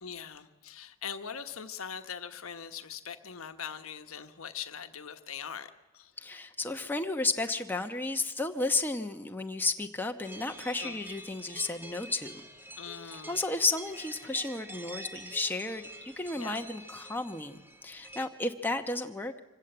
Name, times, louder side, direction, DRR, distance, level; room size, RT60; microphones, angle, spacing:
voice 1, 0.0-6.1 10.8-11.0 12.8-13.4 16.4-16.7, left 7 dB, 70° left, 8 dB, 1.2 m, -42 dB
voice 2, 6.2-12.4 13.0-19.3, left 2 dB, 10° left, 4 dB, 1.0 m, -33 dB
sound 1, 10.2-18.3, right 1 dB, 10° right, 1.5 m, -47 dB
25.0 x 16.5 x 7.9 m, 1.1 s
head